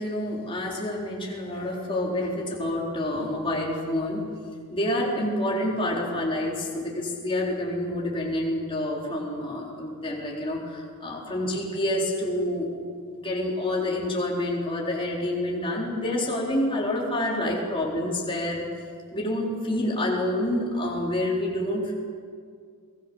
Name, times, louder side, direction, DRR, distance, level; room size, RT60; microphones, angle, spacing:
voice 1, 0.0-4.2 4.7-12.7 13.1-18.7 19.1-21.9, left 1 dB, 25° left, -3 dB, 4.1 m, -28 dB
24.5 x 20.0 x 7.1 m, 2.1 s
head